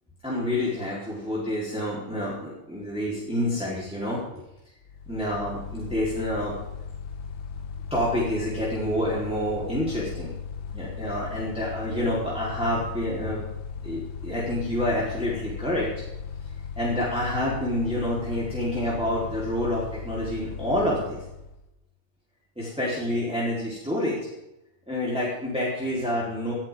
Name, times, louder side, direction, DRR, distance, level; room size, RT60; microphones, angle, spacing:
voice 1, 0.2-4.4 5.1-6.6 7.9-10.3 10.7-13.4 13.8-15.9 16.8-21.2 22.6-24.2 24.9-26.5, left 1 dB, 5° right, -7 dB, 3.9 m, -28 dB
Mechanical fan, 4.8-21.7, left 6 dB, 75° left, 1.9 m, -37 dB
20.5 x 12.0 x 3.8 m, 0.89 s
omnidirectional pair, 2.1 m